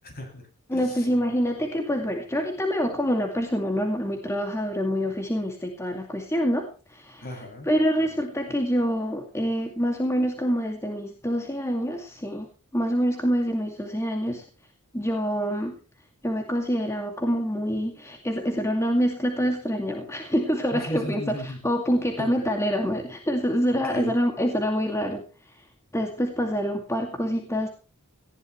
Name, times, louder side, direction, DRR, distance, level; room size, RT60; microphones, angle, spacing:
voice 1, 0.0-1.1 7.2-7.7 20.7-21.6 22.2-22.5 23.7-24.1, left 1 dB, 45° left, 5 dB, 7.0 m, -36 dB
voice 2, 0.7-7.2 7.7-12.5 12.7-14.4 14.9-15.8 16.2-25.2 25.9-27.7, equal, 15° left, 3 dB, 2.3 m, -26 dB
19.0 x 15.0 x 3.2 m, 0.35 s
head